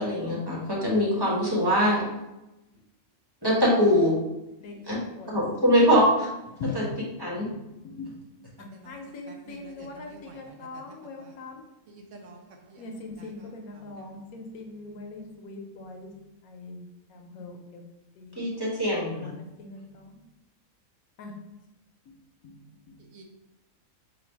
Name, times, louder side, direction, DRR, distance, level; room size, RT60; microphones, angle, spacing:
voice 1, 0.0-2.0 3.4-4.1 4.9-5.0 5.3-6.3 6.7-6.8 7.2-7.5 18.4-19.3, equal, 20° right, 1.0 m, -23 dB
voice 2, 4.6-5.3 6.6-7.0 7.3-7.6 7.8-8.2 8.6-11.7 12.8-16.1 16.4-16.8 17.1-17.8 18.2-18.5 19.0-20.2 21.2-21.3 22.4-22.6 22.9-23.0, left 3 dB, 90° left, 1.2 m, -41 dB
voice 3, 8.7-11.3 11.9-12.9 13.2-13.5 13.7-14.1 23.1-23.2, right 2 dB, 70° right, 0.8 m, -50 dB
4.0 x 2.3 x 4.5 m
omnidirectional pair, 1.5 m